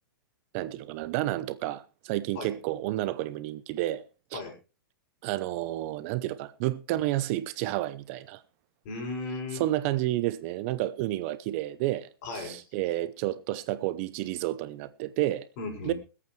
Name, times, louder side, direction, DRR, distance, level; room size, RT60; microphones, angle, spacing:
voice 1, 0.5-4.0 4.3-4.4 5.2-8.4 9.5-12.1 12.3-15.5 15.8-15.9, right 15 dB, 40° right, 0.7 m, -30 dB
voice 2, 8.8-9.6 12.2-12.7 15.6-16.0, left 3 dB, 45° left, 6.5 m, -36 dB
25.0 x 8.6 x 3.2 m
hypercardioid pair, 140°, 12 cm